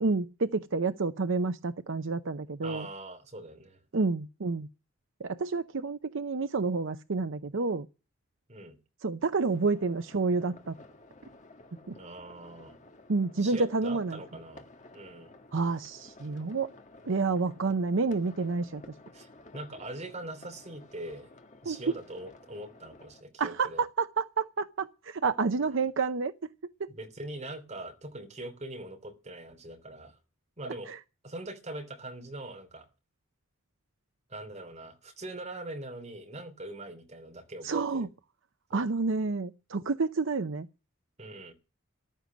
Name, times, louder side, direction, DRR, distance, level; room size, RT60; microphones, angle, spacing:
voice 1, 0.0-2.9 3.9-4.7 5.2-7.9 9.0-10.7 11.9-12.0 13.1-14.2 15.5-16.7 17.1-18.8 21.7-21.8 23.4-26.3 26.8-26.9 30.7-31.0 37.6-38.1 38.7-40.7, right 4 dB, 65° right, 0.7 m, -29 dB
voice 2, 2.6-3.8 8.5-8.8 11.9-12.8 13.4-14.7 14.9-15.3 19.1-21.3 21.6-23.8 26.9-30.2 30.6-30.9 31.2-32.9 34.3-38.1 38.7-38.8 41.2-41.5, right 1 dB, 35° right, 3.1 m, -42 dB
sound 1, 9.4-23.2, left 2 dB, 35° left, 1.5 m, -53 dB
14.5 x 12.0 x 6.2 m
head